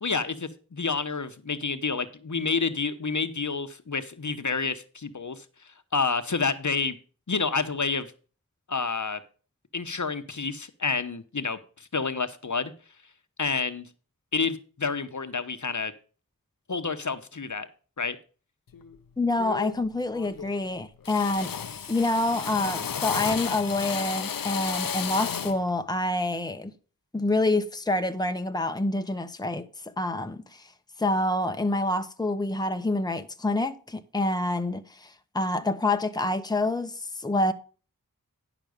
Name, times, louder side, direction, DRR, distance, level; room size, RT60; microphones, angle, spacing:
voice 1, 0.0-5.4 5.9-7.0 7.3-8.1 8.7-9.2 9.7-12.7 13.4-13.9 14.3-15.9 16.7-17.7 18.0-18.2, left 4 dB, 55° left, 1.0 m, -29 dB
Drill, 18.7-19.0 19.4-19.9 20.1-20.7 21.0-25.6, left 7 dB, 80° left, 0.6 m, -33 dB
voice 2, 19.2-21.5 21.9-26.7 27.1-29.7 30.0-30.6 31.0-37.5, left 2 dB, 10° left, 0.9 m, -27 dB
10.5 x 6.0 x 5.0 m
wide cardioid pair, 45°, 34 cm